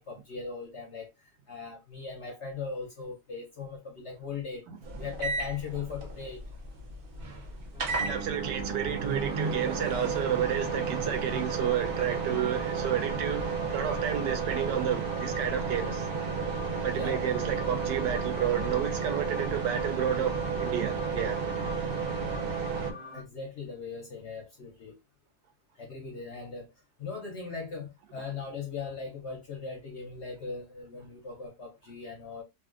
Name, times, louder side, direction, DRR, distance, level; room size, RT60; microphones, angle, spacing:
voice 1, 0.0-4.7 5.0-6.4 9.7-9.9 14.6-14.7 16.8-17.3 23.1-25.0 25.8-26.7 27.0-32.4, left 5 dB, 60° left, 0.7 m, -39 dB
sound 1, 4.8-22.9, right 5 dB, 60° right, 0.5 m, -32 dB
sound 2, 7.7-23.2, left 2 dB, 5° right, 0.4 m, -45 dB
voice 2, 8.1-16.0 16.8-21.4, right 9 dB, 85° right, 1.3 m, -31 dB
2.9 x 2.6 x 2.4 m
omnidirectional pair, 1.8 m